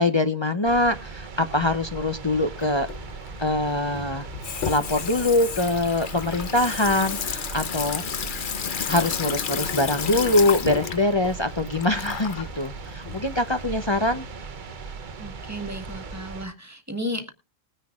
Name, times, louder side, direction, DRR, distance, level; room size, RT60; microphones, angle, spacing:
voice 1, 0.0-2.9 3.4-4.3 4.6-8.0 8.9-14.2, left 2 dB, 30° left, 8 dB, 0.8 m, -23 dB
sound 1, 0.6-16.5, right 4 dB, 50° right, 1.0 m, -38 dB
Water tap faucet / Sink (filling or washing), 2.6-14.3, left 7 dB, 55° left, 0.9 m, -32 dB
voice 2, 15.2-17.3, equal, 15° right, 7 dB, 1.6 m, -33 dB
21.0 x 10.0 x 2.4 m, 0.28 s
omnidirectional pair, 1.0 m